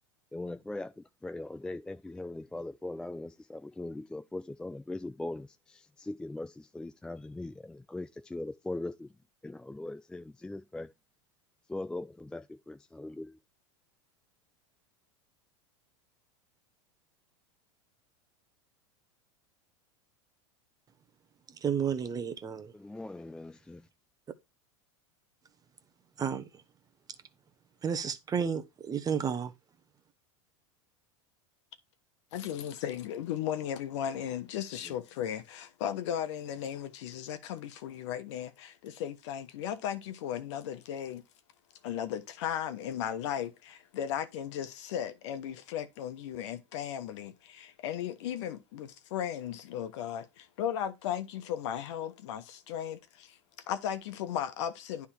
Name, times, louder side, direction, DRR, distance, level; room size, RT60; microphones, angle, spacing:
voice 1, 0.3-9.1 9.4-10.9 11.7-13.4 22.7-23.9 34.9-35.0, left 2 dB, 5° left, 0.3 m, -40 dB
voice 2, 21.6-22.7 26.2-26.4 27.8-29.5, right 7 dB, 25° right, 0.9 m, -31 dB
voice 3, 32.3-41.2 41.8-53.4 53.7-55.1, left 10 dB, 70° left, 1.1 m, -36 dB
9.7 x 3.6 x 4.5 m
hypercardioid pair, 110°, 16 cm